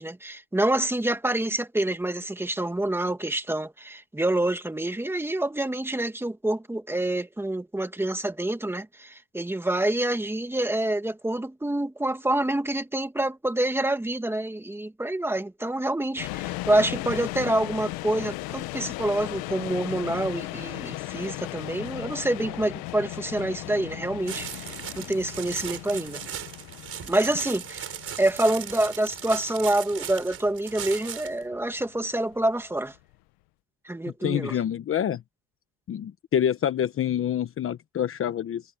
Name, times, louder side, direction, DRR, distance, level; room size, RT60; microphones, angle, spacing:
voice 1, 0.0-26.2 27.0-32.9 33.8-34.6, right 1 dB, 5° right, 2.2 m, -27 dB
sound 1, 16.2-33.2, left 19 dB, 85° left, 1.5 m, -37 dB
sound 2, 24.3-31.4, right 8 dB, 40° right, 4.9 m, -38 dB
voice 2, 34.2-35.2 35.9-38.6, left 10 dB, 35° left, 1.1 m, -27 dB
cardioid pair, 125°, 36 cm